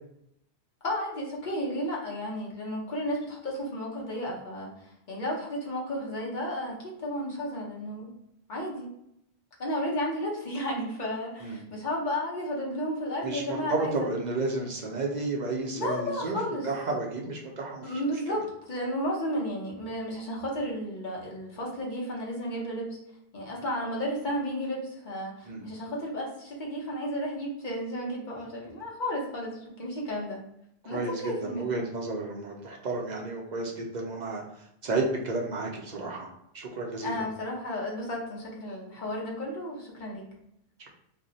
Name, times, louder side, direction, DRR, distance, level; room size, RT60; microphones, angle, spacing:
voice 1, 0.8-8.1 8.5-8.9 9.6-14.1 15.7-16.7 17.8-22.9 23.3-30.4 30.8-31.7 37.0-40.2, equal, 50° left, -3 dB, 0.9 m, -33 dB
voice 2, 13.2-18.0 25.5-25.7 30.8-34.4 34.8-36.3 36.5-37.2, right 3 dB, 55° right, -1 dB, 0.5 m, -32 dB
2.5 x 2.0 x 3.8 m, 0.77 s
omnidirectional pair, 1.1 m